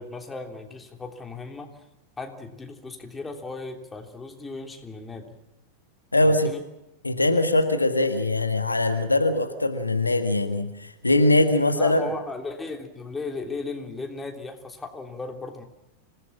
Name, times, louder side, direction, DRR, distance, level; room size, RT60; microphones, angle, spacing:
voice 1, 0.0-1.8 2.2-5.3 6.2-6.6 11.8-15.6, left 3 dB, 10° left, 3 dB, 3.3 m, -36 dB
voice 2, 6.1-6.5 7.0-12.1, left 2 dB, 80° left, 8 dB, 1.7 m, -22 dB
26.5 x 18.0 x 7.4 m, 0.89 s
figure-of-eight pair, 90°, 0 cm